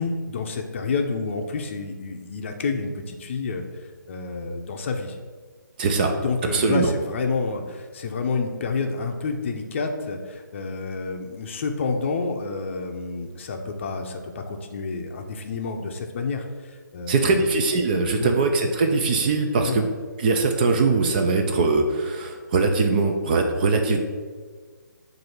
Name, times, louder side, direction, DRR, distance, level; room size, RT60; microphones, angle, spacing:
voice 1, 0.0-3.6 4.1-5.2 6.2-17.5 18.2-18.3 19.7-19.8, left 4 dB, 35° left, 4 dB, 0.6 m, -29 dB
voice 2, 5.8-6.1 6.5-6.9 17.1-19.9 20.2-24.0, right 3 dB, 25° right, 4 dB, 0.5 m, -21 dB
7.5 x 2.7 x 5.8 m, 1.5 s
figure-of-eight pair, 150°, 11 cm